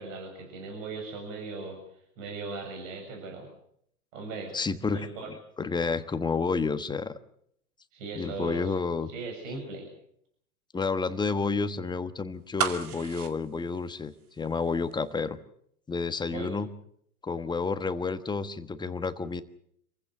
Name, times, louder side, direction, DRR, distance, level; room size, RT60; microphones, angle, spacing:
voice 1, 0.0-1.8 2.2-3.5 4.1-4.6 4.9-5.3 7.9-8.8 9.1-9.9 16.3-16.5, right 3 dB, 55° right, 3 dB, 7.2 m, -38 dB
voice 2, 4.5-7.2 8.2-9.1 10.7-15.4 15.9-16.7 17.2-19.4, left 4 dB, 10° left, 10 dB, 1.3 m, -30 dB
sound 1, 12.6-14.6 14.9-15.0, right 7 dB, 75° right, 2.4 m, -33 dB
27.0 x 15.5 x 8.2 m, 0.70 s
hypercardioid pair, 110°, 45 cm